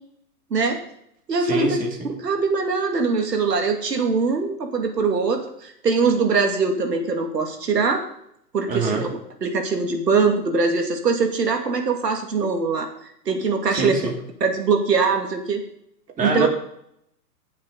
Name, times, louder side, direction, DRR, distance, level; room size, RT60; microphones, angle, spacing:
voice 1, 0.5-0.8 1.3-1.8 2.2-8.0 8.5-9.1 9.4-12.9 13.3-14.0 14.4-15.6 16.2-16.5, right 4 dB, 90° right, 4 dB, 2.5 m, -22 dB
voice 2, 1.4-2.1 8.7-9.0 13.7-14.2 16.2-16.5, right 4 dB, 15° right, 0 dB, 2.7 m, -25 dB
14.5 x 7.4 x 4.0 m, 0.73 s
hypercardioid pair, 130°, 48 cm